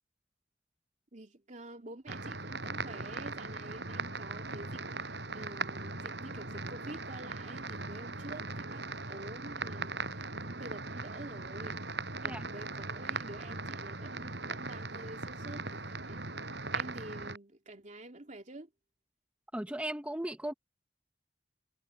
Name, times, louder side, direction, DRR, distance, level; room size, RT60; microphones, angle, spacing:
voice 1, 1.1-11.8 12.2-16.3 16.7-18.7, right 1 dB, 45° right, 2.8 m, -48 dB
sound 1, 2.1-17.4, right 3 dB, 70° right, 7.9 m, -39 dB
voice 2, 19.5-20.5, right 1 dB, 10° right, 0.9 m, -36 dB
head